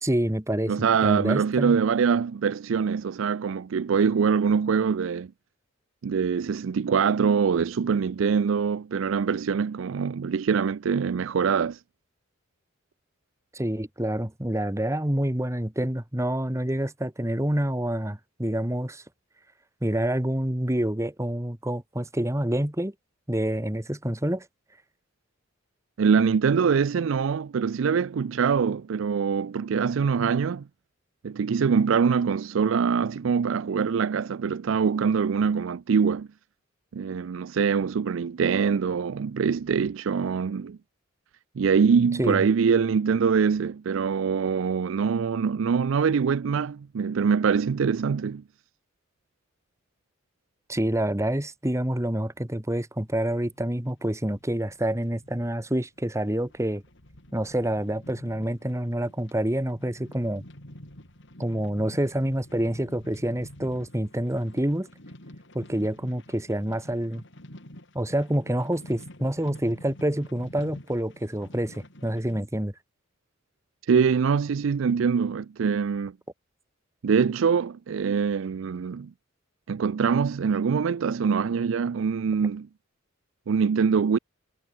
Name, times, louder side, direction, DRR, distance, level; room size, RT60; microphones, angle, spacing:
voice 1, 0.0-0.7 1.0-1.8 13.5-19.0 19.8-22.9 23.3-24.5 42.2-42.5 50.7-56.8 57.3-60.4 61.4-64.9 65.5-67.2 67.9-72.7, right 1 dB, 15° right, 1.7 m, -27 dB
voice 2, 0.7-5.3 6.0-11.8 26.0-30.6 31.2-36.3 36.9-40.8 41.6-48.4 73.9-76.1 77.0-79.1 79.7-82.7 83.5-84.2, right 6 dB, 70° right, 0.4 m, -24 dB
sound 1, 53.1-72.4, left 1 dB, 60° left, 5.1 m, -48 dB
head